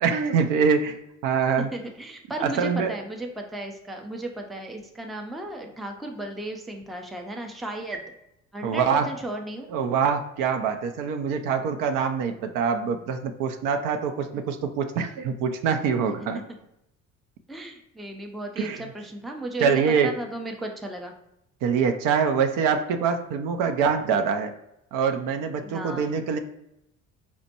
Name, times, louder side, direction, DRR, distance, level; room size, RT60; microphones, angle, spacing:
voice 1, 0.0-1.0 1.2-1.7 2.4-3.0 8.6-9.1 9.7-16.4 18.6-18.8 19.6-20.1 21.6-24.5 24.9-26.4, right 6 dB, 55° right, 7 dB, 0.5 m, -24 dB
voice 2, 1.7-8.0 8.5-9.7 14.3-14.4 17.5-18.7 18.9-19.7 20.0-21.1 25.6-26.2, right 1 dB, ahead, 2 dB, 0.4 m, -35 dB
4.3 x 2.1 x 2.9 m, 0.82 s
hypercardioid pair, 55°, 39 cm